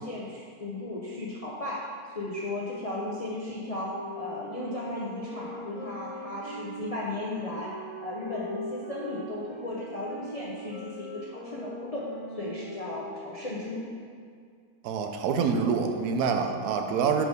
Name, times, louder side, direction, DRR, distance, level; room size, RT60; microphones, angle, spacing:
voice 1, 0.0-12.0 12.3-13.8, left 2 dB, 50° left, -6 dB, 0.4 m, -35 dB
sound 1, 3.8-13.5, equal, 90° left, 1.7 m, -41 dB
voice 2, 14.8-17.2, right 6 dB, 90° right, 5 dB, 1.1 m, -26 dB
4.8 x 3.7 x 5.2 m, 2.1 s
omnidirectional pair, 1.6 m